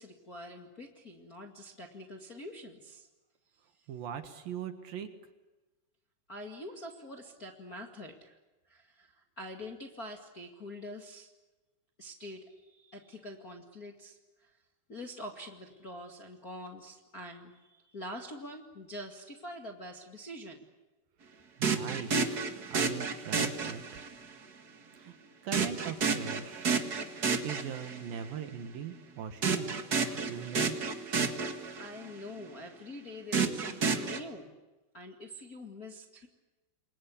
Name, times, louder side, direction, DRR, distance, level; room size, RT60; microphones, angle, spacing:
voice 1, 0.0-3.1 6.3-8.4 8.7-11.3 12.0-14.5 14.9-20.7 31.8-34.5 34.9-36.3, left 1 dB, 35° left, 2 dB, 1.6 m, -45 dB
voice 2, 3.9-5.1 21.6-22.4 22.7-23.8 25.0-25.2 25.4-26.8 27.4-29.8 30.1-30.8, right 8 dB, 65° right, 8 dB, 3.0 m, -40 dB
sound 1, 21.6-24.2 25.5-28.1 29.4-32.1 33.3-34.2, right 5 dB, 85° right, 0.8 m, -31 dB
29.0 x 23.5 x 8.6 m, 1.1 s
omnidirectional pair, 4.9 m